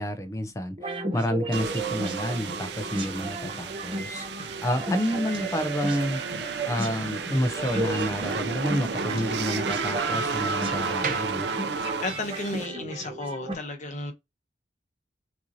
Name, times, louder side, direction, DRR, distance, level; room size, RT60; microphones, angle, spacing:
voice 1, 0.0-6.2 6.6-11.5, equal, 15° left, 0.5 m, -29 dB
sound 1, 0.8-13.5, right 2 dB, 30° right, 1.1 m, -35 dB
sound 2, 1.5-12.7, right 5 dB, 75° right, 0.6 m, -32 dB
Slam, 2.8-12.2, right 4 dB, 50° right, 0.8 m, -43 dB
voice 2, 12.0-14.1, left 2 dB, 45° left, 1.0 m, -33 dB
5.9 x 2.6 x 2.7 m
head